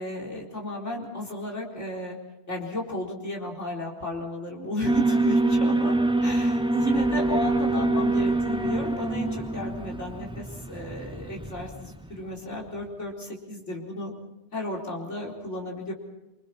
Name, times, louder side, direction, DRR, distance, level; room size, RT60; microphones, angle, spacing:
voice 1, 0.0-2.2 2.5-14.1 14.5-15.9, left 1 dB, 85° left, -2 dB, 4.6 m, -34 dB
Alarm, 4.8-12.0, right 2 dB, 5° right, 0.8 m, -25 dB
28.0 x 25.0 x 4.3 m, 1.0 s
omnidirectional pair, 1.2 m